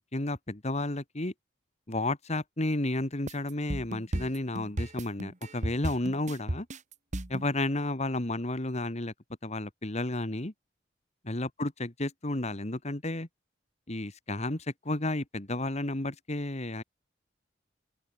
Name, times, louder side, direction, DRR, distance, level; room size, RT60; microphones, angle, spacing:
voice 1, 0.0-1.3 1.9-6.7 7.3-9.1 9.4-10.5 11.2-13.3 13.9-16.8, left 2 dB, 35° left, 2.0 m, -32 dB
sound 1, 3.3-7.5, right 1 dB, 40° right, 1.9 m, -34 dB
open air
head